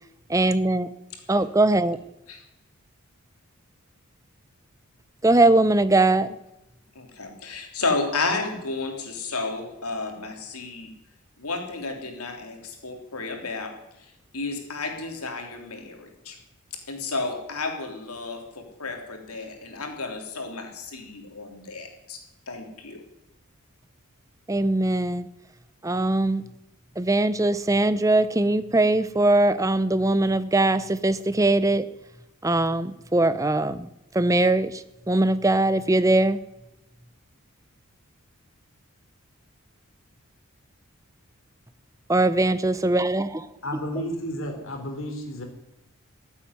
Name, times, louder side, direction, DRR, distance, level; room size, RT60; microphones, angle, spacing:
voice 1, 0.3-0.9 1.3-2.0 5.2-6.4 24.5-25.3 25.8-26.4 27.0-31.9 32.4-33.9 34.1-36.4 42.1-43.5, right 2 dB, 15° right, 14 dB, 0.6 m, -21 dB
voice 2, 7.0-10.9 11.4-16.4 16.7-22.2 22.5-23.0, left 3 dB, 80° left, 3 dB, 3.3 m, -32 dB
voice 3, 43.6-45.4, equal, 60° left, 4 dB, 3.4 m, -32 dB
15.0 x 8.5 x 9.7 m, 0.90 s
head